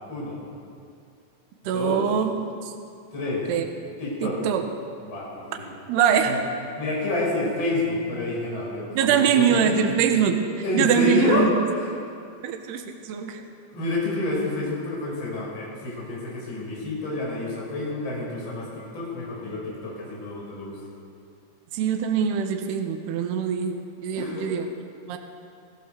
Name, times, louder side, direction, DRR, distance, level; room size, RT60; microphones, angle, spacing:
voice 1, 0.1-0.4 1.6-2.0 3.1-3.5 4.0-4.4 5.0-5.7 6.3-6.4 6.8-9.9 10.6-11.9 13.7-20.8 24.1-24.5, left 2 dB, 25° left, -5 dB, 6.7 m, -28 dB
voice 2, 1.7-2.3 2.6-2.7 3.5-3.6 4.2-4.6 5.9-6.4 8.9-10.4 10.7-11.5 12.4-13.4 21.7-24.7 25.1-25.2, right 7 dB, 70° right, 5 dB, 3.0 m, -23 dB
25.5 x 15.5 x 6.9 m, 2.4 s
omnidirectional pair, 5.6 m